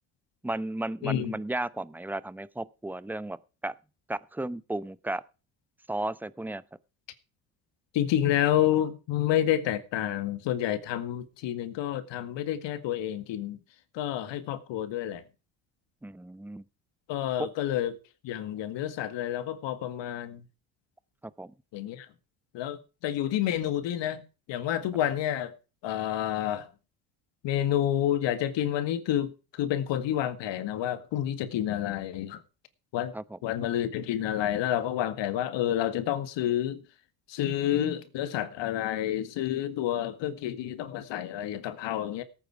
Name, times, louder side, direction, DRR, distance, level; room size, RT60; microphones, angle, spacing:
voice 1, 0.4-3.4 3.6-3.7 4.1-5.2 5.9-6.6 16.0-16.6 21.4-21.5 33.1-33.4, right 2 dB, 5° right, 0.8 m, -34 dB
voice 2, 1.0-1.4 7.9-13.6 13.9-15.3 17.1-17.9 18.2-20.4 21.7-22.1 22.5-24.2 24.5-25.5 25.8-26.7 27.4-32.4 32.9-33.1 33.4-36.8 37.3-42.2, left 11 dB, 65° left, 1.9 m, -29 dB
17.0 x 9.2 x 4.7 m
supercardioid pair, 75°, 47 cm